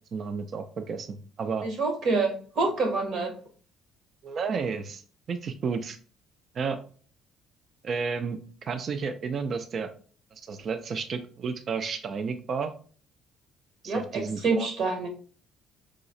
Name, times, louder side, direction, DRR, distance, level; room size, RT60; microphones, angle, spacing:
voice 1, 0.1-1.7 4.2-5.0 5.3-6.0 6.5-6.8 7.8-9.9 10.3-12.7 13.8-14.7, right 5 dB, 45° right, 9 dB, 0.3 m, -32 dB
voice 2, 1.6-3.3 13.8-15.1, right 3 dB, 60° right, 3 dB, 1.0 m, -27 dB
4.7 x 2.0 x 2.6 m, 0.42 s
cardioid pair, 125°, 0 cm